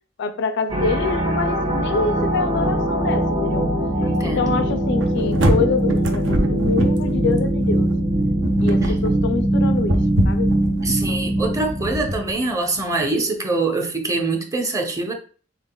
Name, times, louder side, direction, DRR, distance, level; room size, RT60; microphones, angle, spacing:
voice 1, 0.2-3.7 4.2-7.9 8.6-10.0 10.2-10.5, left 4 dB, 65° left, 0.4 m, -25 dB
sound 1, 0.7-12.5, right 1 dB, 35° right, 1.4 m, -21 dB
voice 2, 4.0-4.6 8.8-8.9 10.8-15.1, right 3 dB, 20° right, 0.7 m, -24 dB
sound 2, 5.0-12.2, right 1 dB, 70° right, 0.7 m, -25 dB
5.7 x 3.7 x 2.2 m
head